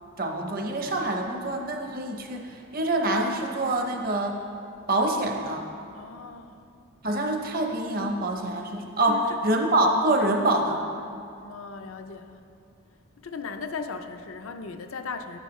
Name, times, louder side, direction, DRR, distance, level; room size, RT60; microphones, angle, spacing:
voice 1, 0.2-4.4 4.9-5.7 7.0-10.8, right 1 dB, 40° right, 3 dB, 0.8 m, -26 dB
voice 2, 5.9-6.6 9.1-9.4 11.4-12.4 13.2-15.4, left 5 dB, 70° left, 7 dB, 0.5 m, -37 dB
10.0 x 9.0 x 3.2 m, 2.5 s
head